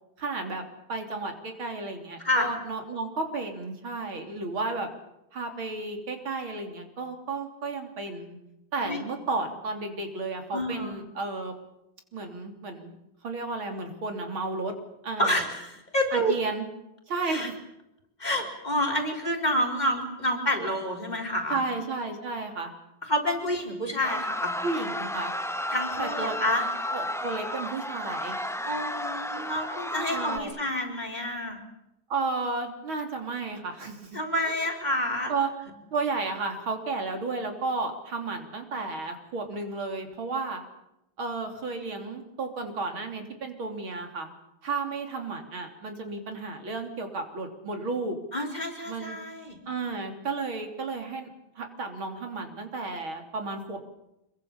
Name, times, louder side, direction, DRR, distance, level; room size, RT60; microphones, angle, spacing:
voice 1, 0.2-0.6 0.9-4.9 5.3-8.4 8.7-11.5 12.1-13.0 13.2-14.7 15.0-15.4 16.1-16.7 17.1-17.5 19.1-19.2 21.5-22.7 24.6-25.3 26.0-26.4 26.9-28.4 30.1-30.6 32.1-34.2 34.4-34.5 35.3-35.5 35.9-40.6 41.2-44.3 44.6-48.2 48.9-49.2 49.7-51.3 51.6-53.8, right 3 dB, 85° right, 5 dB, 4.0 m, -33 dB
voice 2, 10.5-10.9 15.2-16.3 17.3-17.5 18.2-21.6 23.0-24.5 25.7-26.6 28.6-31.6 34.1-35.3 48.3-49.6, equal, 20° left, 4 dB, 4.4 m, -28 dB
sound 1, 24.0-30.4, left 1 dB, 5° left, 0.5 m, -32 dB
26.0 x 23.0 x 7.3 m, 0.86 s
omnidirectional pair, 2.2 m